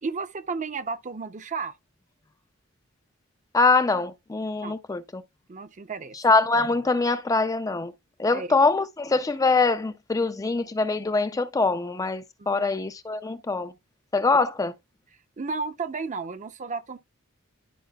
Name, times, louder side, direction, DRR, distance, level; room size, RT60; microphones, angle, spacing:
voice 1, 0.0-1.8 4.6-4.8 5.5-6.2 8.3-8.5 12.4-12.7 15.4-17.0, right 4 dB, 35° right, 0.6 m, -33 dB
voice 2, 3.5-5.2 6.2-7.9 8.2-13.7 14.1-14.7, left 3 dB, 15° left, 0.4 m, -23 dB
12.5 x 4.8 x 2.3 m
head